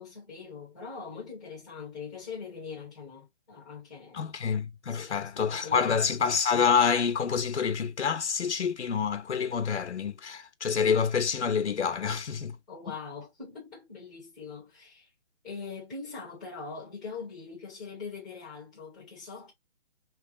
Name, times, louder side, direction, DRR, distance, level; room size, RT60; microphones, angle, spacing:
voice 1, 0.0-4.2 4.9-6.0 12.7-15.1 15.4-19.5, left 5 dB, ahead, 0.8 m, -42 dB
voice 2, 4.1-12.6, left 6 dB, 85° left, 1.0 m, -27 dB
3.3 x 3.2 x 3.8 m
hypercardioid pair, 175°, 33 cm